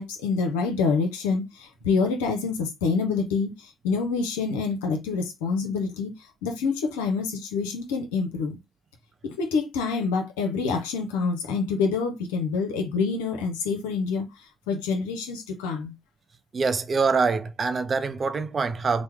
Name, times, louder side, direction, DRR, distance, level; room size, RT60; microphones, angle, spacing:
voice 1, 0.0-6.1 6.4-8.6 9.2-14.2 14.7-15.9, left 4 dB, 85° left, 0.6 m, -27 dB
voice 2, 16.5-19.0, right 4 dB, 45° right, 0.5 m, -24 dB
3.0 x 2.1 x 3.4 m
hypercardioid pair, 40°, 0 cm